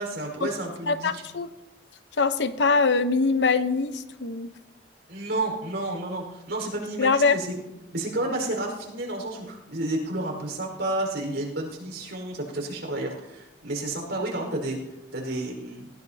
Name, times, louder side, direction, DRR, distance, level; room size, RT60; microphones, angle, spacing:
voice 1, 0.0-1.2 5.1-7.6 7.9-14.8 15.1-15.9, right 2 dB, 90° right, 1 dB, 4.8 m, -31 dB
voice 2, 0.9-1.5 2.2-4.5 7.0-7.4, left 4 dB, 75° left, 10 dB, 0.9 m, -23 dB
19.0 x 16.5 x 2.8 m, 0.92 s
head